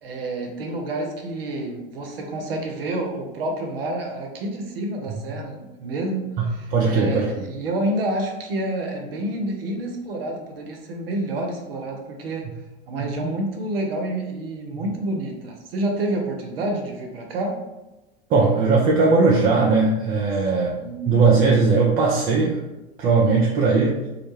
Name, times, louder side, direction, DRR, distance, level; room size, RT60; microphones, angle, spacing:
voice 1, 0.0-12.5 12.9-17.6 20.6-21.2, right 1 dB, 80° right, 2 dB, 0.6 m, -28 dB
voice 2, 6.7-7.3 13.0-13.3 14.7-14.8 18.3-20.7 21.1-22.6 23.0-24.0, right 4 dB, 30° right, -3 dB, 0.4 m, -19 dB
2.2 x 2.0 x 3.0 m, 1.0 s
hypercardioid pair, 85°, 29 cm